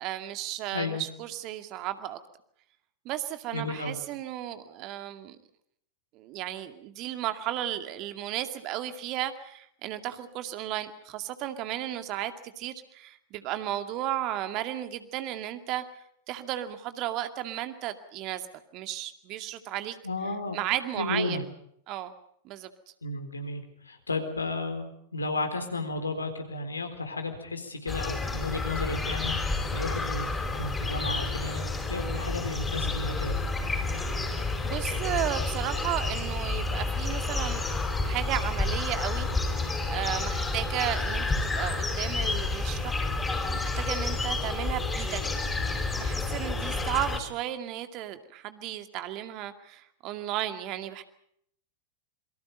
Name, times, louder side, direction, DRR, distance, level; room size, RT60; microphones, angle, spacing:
voice 1, 0.0-2.2 3.0-5.4 6.1-15.8 16.3-20.0 20.5-21.4 21.9-22.1 22.4-22.7 34.6-39.3 39.6-45.2 45.9-51.0, right 13 dB, 40° right, 8 dB, 2.2 m, -34 dB
voice 2, 0.7-1.0 3.5-3.9 20.0-20.6 21.0-21.4 23.0-33.4, left 2 dB, 80° left, 6 dB, 4.1 m, -33 dB
sound 1, 27.9-47.2, left 3 dB, 10° left, 4.8 m, -30 dB
27.5 x 23.5 x 5.4 m, 0.69 s
figure-of-eight pair, 95°, 0 cm